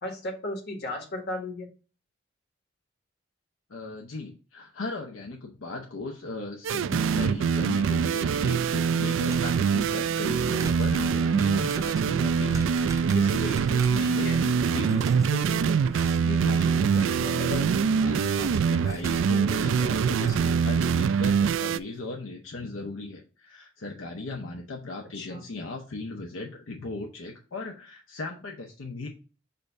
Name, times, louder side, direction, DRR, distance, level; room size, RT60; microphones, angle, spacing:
voice 1, 0.0-1.7 14.0-14.4 25.1-25.4, left 1 dB, 60° left, 1 dB, 1.6 m, -35 dB
voice 2, 3.7-29.1, left 3 dB, 80° left, 2 dB, 0.8 m, -37 dB
sound 1, 6.6-21.8, right 6 dB, 75° right, 0.3 m, -24 dB
sound 2, 9.0-9.8 10.4-14.1 14.7-15.4 15.8-16.3 16.8-17.8 18.1-20.6 21.0-21.1 21.5-21.6, right 2 dB, 15° right, 0.6 m, -43 dB
6.7 x 2.6 x 5.4 m, 0.36 s
head